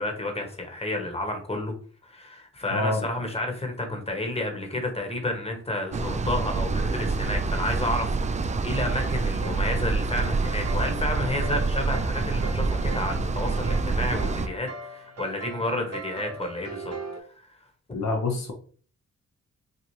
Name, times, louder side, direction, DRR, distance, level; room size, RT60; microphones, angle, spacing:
voice 1, 0.0-1.7 2.0-16.9 17.4-17.5 17.9-18.0, left 1 dB, 20° left, 3 dB, 1.2 m, -31 dB
voice 2, 2.7-3.0 17.9-18.5, left 3 dB, 60° left, 1 dB, 0.8 m, -26 dB
sound 1, 5.9-14.5, right 3 dB, 25° right, 0.3 m, -27 dB
sound 2, 8.8-17.2, right 2 dB, 55° right, 0.8 m, -40 dB
4.2 x 2.4 x 3.2 m, 0.43 s
cardioid pair, 55°, 31 cm